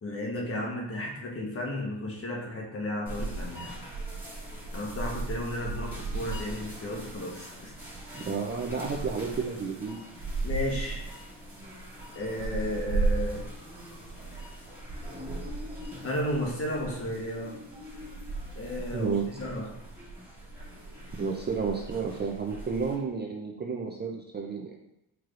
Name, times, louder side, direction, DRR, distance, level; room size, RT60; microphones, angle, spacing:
voice 1, 0.0-3.8 4.7-7.7 8.1-8.3 10.4-11.0 12.1-13.5 16.0-17.6 18.5-19.8, left 1 dB, 30° left, -1 dB, 1.1 m, -33 dB
sound 1, 3.1-22.9, right 2 dB, 5° right, 1.7 m, -37 dB
voice 2, 8.1-10.0 18.9-19.2 21.2-24.8, right 5 dB, 25° right, 0 dB, 0.4 m, -31 dB
4.7 x 4.5 x 2.5 m, 0.87 s
cardioid pair, 115°, 43 cm